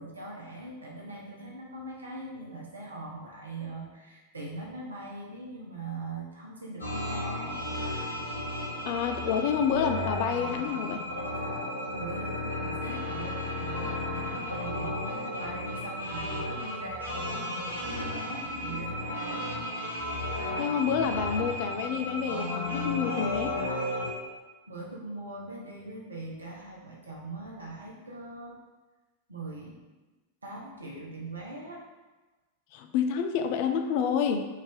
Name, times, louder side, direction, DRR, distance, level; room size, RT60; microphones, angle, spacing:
voice 1, 0.0-7.5 11.9-19.5 24.7-28.6 29.3-29.8 30.4-31.8, right 2 dB, 75° right, -4 dB, 0.8 m, -41 dB
sound 1, 6.8-24.1, left 1 dB, 80° left, 0.7 m, -34 dB
voice 2, 8.9-11.0 20.6-23.6 32.7-34.5, left 7 dB, 45° left, 6 dB, 0.3 m, -28 dB
3.2 x 2.6 x 3.4 m, 1.2 s
figure-of-eight pair, 90°, 0 cm